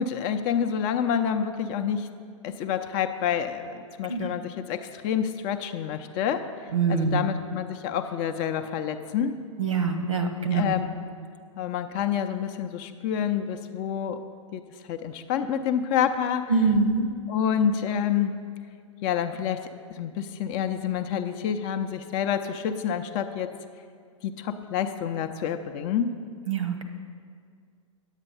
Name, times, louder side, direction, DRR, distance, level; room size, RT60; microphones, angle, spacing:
voice 1, 0.0-2.1 2.4-6.4 6.9-9.4 10.5-10.9 11.6-14.2 14.5-16.4 17.3-18.4 19.0-23.6 24.2-26.1, left 8 dB, 30° left, 7 dB, 0.5 m, -28 dB
voice 2, 6.7-7.2 9.6-10.7 16.5-17.1 26.5-26.8, right 4 dB, 75° right, 7 dB, 1.1 m, -24 dB
10.0 x 8.1 x 5.5 m, 2.1 s
figure-of-eight pair, 110°, 17 cm